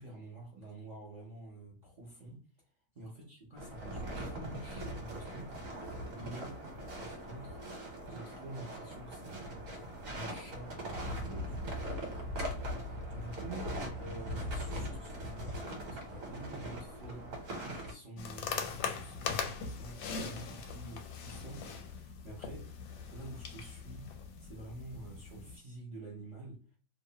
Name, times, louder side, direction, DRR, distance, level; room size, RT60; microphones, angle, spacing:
voice 1, 0.0-2.4 2.9-5.6 6.1-6.6 7.0-7.6 8.0-11.7 13.1-17.3 17.7-22.7 23.1-24.1 24.4-26.6, right 2 dB, 75° right, -5 dB, 0.3 m, -48 dB
sound 1, 3.6-17.9, equal, 60° right, 1.1 m, -40 dB
sound 2, 18.2-25.6, left 6 dB, 80° left, 1.2 m, -41 dB
2.8 x 2.0 x 2.7 m, 0.38 s
omnidirectional pair, 1.8 m